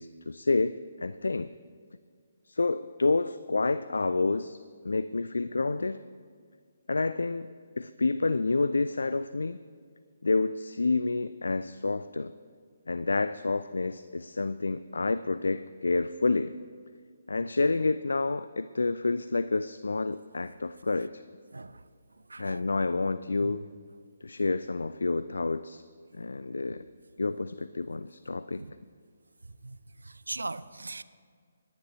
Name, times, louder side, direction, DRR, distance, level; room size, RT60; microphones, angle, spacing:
voice 1, 0.0-1.5 2.4-4.6 4.8-6.0 6.9-9.6 10.2-12.3 12.9-16.6 17.3-21.2 22.4-23.7 24.2-25.8 26.1-26.9 27.2-28.6, left 3 dB, 65° left, 0.3 m, -29 dB
voice 2, 21.5-21.9 22.2-22.6 23.4-23.5 28.6-28.7 29.4-31.0, right 3 dB, 70° right, 0.5 m, -40 dB
27.0 x 10.5 x 3.2 m
figure-of-eight pair, 140°, 0 cm